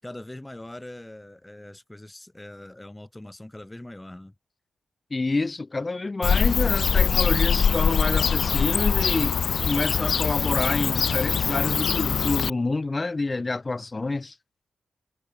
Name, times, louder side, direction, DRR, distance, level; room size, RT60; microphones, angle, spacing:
voice 1, 0.0-4.3, left 1 dB, 15° left, 6.4 m, -42 dB
voice 2, 5.1-14.3, left 3 dB, 35° left, 3.1 m, -28 dB
Bird / Cricket, 6.2-12.5, left 6 dB, 65° left, 1.4 m, -23 dB
supercardioid pair, 45°, 0 cm